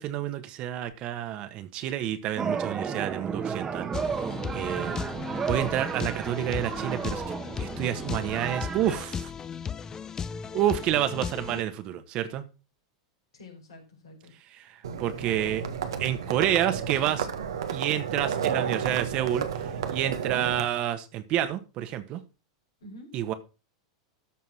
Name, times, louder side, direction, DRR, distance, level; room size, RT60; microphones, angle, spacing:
voice 1, 0.0-3.9 4.5-4.9 5.5-7.2 7.6-9.3 10.5-12.4 15.0-15.6 16.0-17.3 17.7-19.5 19.9-22.2 23.1-23.3, right 11 dB, 45° right, 10 dB, 1.6 m, -29 dB
sound 1, 2.4-9.0, right 6 dB, 25° right, 1.4 m, -33 dB
sound 2, 3.9-11.6, left 7 dB, 25° left, 0.6 m, -36 dB
voice 2, 13.3-14.7 15.1-15.6 20.2-20.5 22.8-23.1, left 1 dB, 75° left, 2 dB, 4.3 m, -48 dB
Livestock farm animals working animals, 14.8-20.6, right 7 dB, 75° right, 1.5 m, -31 dB
13.0 x 4.7 x 6.0 m, 0.32 s
hypercardioid pair, 95°, 2 cm